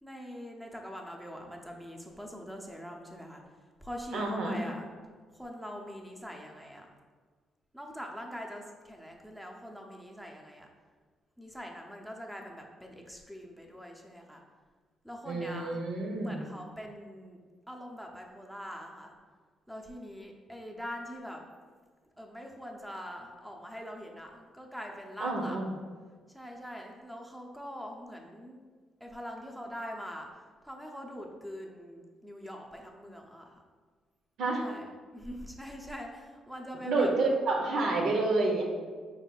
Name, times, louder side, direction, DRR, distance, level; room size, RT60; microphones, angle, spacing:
voice 1, 0.0-4.9 5.3-6.9 7.7-10.7 11.4-14.4 15.0-15.9 16.2-17.4 17.7-19.1 19.7-21.4 22.2-25.6 26.3-28.6 29.0-33.6 34.6-37.1, equal, ahead, 1 dB, 0.7 m, -43 dB
voice 2, 4.1-4.6 15.3-16.4 25.2-25.7 34.4-34.6 36.8-38.6, right 3 dB, 80° right, 0 dB, 0.7 m, -29 dB
5.0 x 4.1 x 2.3 m, 1.6 s
cardioid pair, 90°, 0 cm